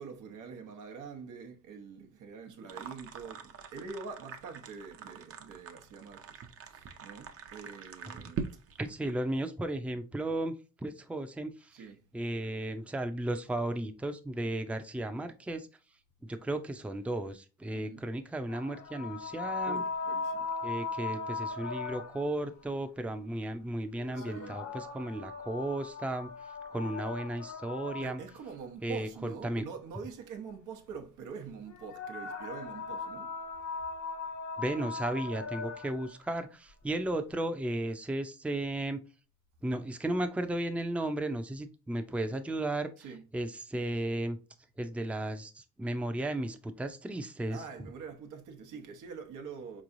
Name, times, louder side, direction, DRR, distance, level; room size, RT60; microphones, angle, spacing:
voice 1, 0.0-6.4 6.7-8.5 9.0-9.2 11.7-12.0 17.7-18.1 19.7-20.5 24.2-24.6 28.0-33.3 43.0-43.2 47.5-49.8, right 5 dB, 85° right, 0.9 m, -45 dB
sound 1, 2.7-9.1, right 6 dB, 50° right, 0.7 m, -44 dB
voice 2, 8.8-10.5 10.8-11.9 12.1-15.7 16.2-19.8 20.6-26.3 26.7-28.2 28.8-29.6 34.6-39.0 39.6-42.9 43.3-44.4 44.8-47.6, right 1 dB, 5° right, 0.5 m, -34 dB
sound 2, 18.5-22.4 24.0-28.5 31.7-36.1, left 4 dB, 70° left, 1.0 m, -38 dB
4.5 x 3.1 x 2.5 m
cardioid pair, 90°, 30 cm